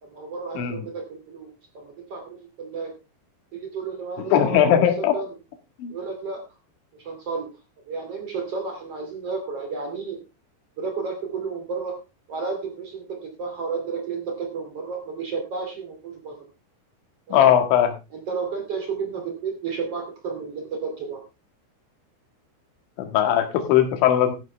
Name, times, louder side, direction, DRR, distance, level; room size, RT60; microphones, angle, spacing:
voice 1, 0.0-2.9 3.5-4.8 5.1-5.4 5.9-6.4 7.0-7.5 7.9-10.2 10.8-12.0 12.3-16.4 17.3-17.5 18.1-21.2, right 5 dB, 40° right, 4 dB, 2.7 m, -32 dB
voice 2, 0.6-0.9 4.3-5.1 5.8-5.9 17.3-17.9 23.0-24.3, left 10 dB, 70° left, 5 dB, 4.0 m, -19 dB
13.5 x 10.5 x 3.4 m, 0.28 s
omnidirectional pair, 5.7 m